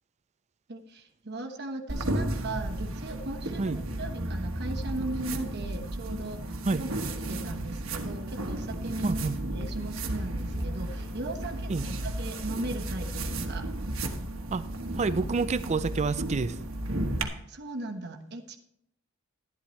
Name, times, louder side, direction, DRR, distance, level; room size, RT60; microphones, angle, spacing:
voice 1, 0.7-9.2 9.5-13.7 17.2-18.6, right 2 dB, 55° right, 1.1 m, -38 dB
sound 1, 1.9-17.2, right 1 dB, 80° right, 1.3 m, -33 dB
sound 2, 8.8-15.5, left 1 dB, 80° left, 5.2 m, -50 dB
voice 2, 9.0-9.4 11.7-11.9 14.5-14.7 14.9-16.6, right 4 dB, 35° right, 0.4 m, -28 dB
11.5 x 11.5 x 3.2 m
head